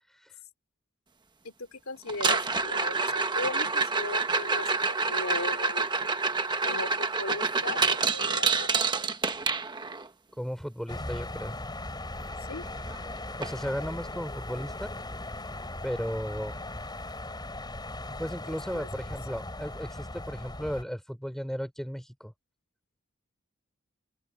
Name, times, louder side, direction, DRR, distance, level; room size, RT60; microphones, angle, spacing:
voice 1, 0.1-0.4 10.4-11.6 13.4-14.9 15.8-16.6 18.2-22.3, equal, ahead, 5.3 m, -35 dB
voice 2, 1.4-6.1 6.6-8.9 12.5-12.6 18.5-18.9, left 3 dB, 80° left, 2.9 m, -38 dB
sound 1, 2.1-10.1 12.3-12.4 12.7-13.0 13.4-13.5 14.1-14.2 16.1-16.2, right 4 dB, 20° right, 1.2 m, -27 dB
sound 2, 10.9-20.8, left 2 dB, 20° left, 6.2 m, -38 dB
open air
head